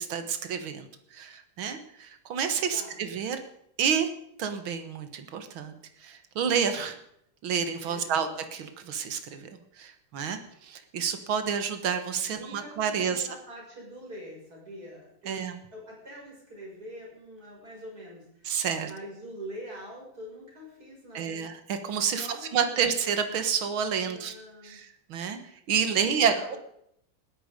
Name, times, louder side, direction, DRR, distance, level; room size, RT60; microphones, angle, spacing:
voice 1, 0.0-3.4 3.8-4.1 4.4-5.7 6.0-7.0 7.4-9.5 9.8-13.3 15.3-15.6 18.4-18.9 21.1-24.3 24.6-25.4 25.7-26.6, right 7 dB, 85° right, 8 dB, 2.2 m, -29 dB
voice 2, 7.8-8.3 12.3-21.4 22.1-22.8 23.8-24.8 26.0-26.6, equal, 45° right, -2 dB, 6.7 m, -44 dB
20.0 x 13.5 x 5.2 m, 0.74 s
omnidirectional pair, 2.2 m